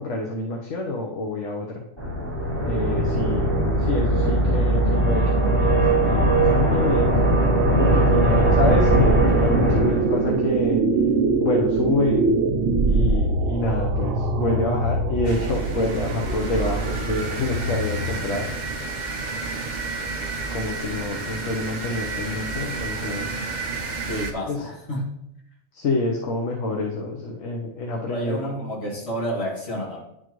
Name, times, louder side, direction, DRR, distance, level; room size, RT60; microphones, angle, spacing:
voice 1, 0.0-1.8 2.7-3.5 3.8-7.1 7.8-10.8 11.4-12.3 12.9-18.5 20.5-23.4 24.5-24.6 25.7-28.7, left 2 dB, 75° left, 0 dB, 1.2 m, -27 dB
sound 1, 2.0-10.5, right 1 dB, 25° left, 3.2 m, -20 dB
sound 2, 5.5-18.7, right 3 dB, 85° right, 1.1 m, -24 dB
sound 3, 15.2-24.3, right 3 dB, 40° right, 0.9 m, -31 dB
voice 2, 24.1-25.1 28.1-30.0, equal, 55° left, -5 dB, 2.3 m, -30 dB
10.5 x 4.4 x 3.0 m, 0.79 s
omnidirectional pair, 1.3 m